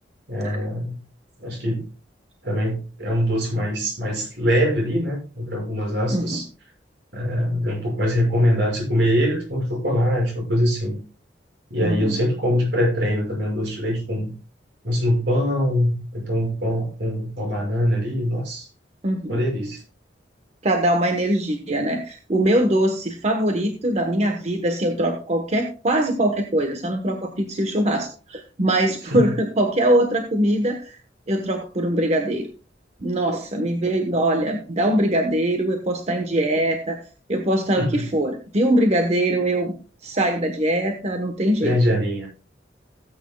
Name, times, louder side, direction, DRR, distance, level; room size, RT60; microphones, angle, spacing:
voice 1, 0.3-1.0 1.4-1.9 2.4-6.5 7.1-11.0 11.7-14.3 14.8-18.7 19.3-19.8 29.1-29.3 37.8-38.1 41.6-42.3, equal, 70° right, -1 dB, 6.1 m, -23 dB
voice 2, 6.1-6.4 11.8-12.2 19.0-19.4 20.6-31.0 31.3-32.5 33.0-37.0 37.3-39.7 40.0-41.8, right 1 dB, 40° right, 4 dB, 1.0 m, -22 dB
17.0 x 8.5 x 2.2 m, 0.35 s
head